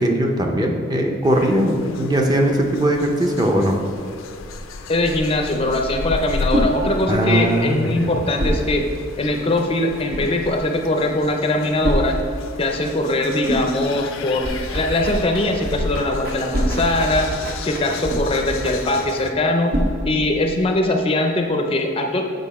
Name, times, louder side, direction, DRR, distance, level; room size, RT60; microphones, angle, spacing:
voice 1, 0.0-3.8 7.1-8.1, right 1 dB, 20° right, 2 dB, 0.6 m, -19 dB
sound 1, 1.2-19.3, left 3 dB, 90° left, 0.5 m, -34 dB
voice 2, 4.9-8.8 9.2-12.2 12.6-17.3 17.6-19.8 20.0-22.2, left 1 dB, 30° left, 3 dB, 0.5 m, -21 dB
sound 2, 5.8-20.7, equal, 80° right, 1.5 m, -29 dB
sound 3, 14.4-19.4, right 1 dB, 50° right, 1.0 m, -32 dB
7.8 x 5.0 x 4.1 m, 2.3 s
head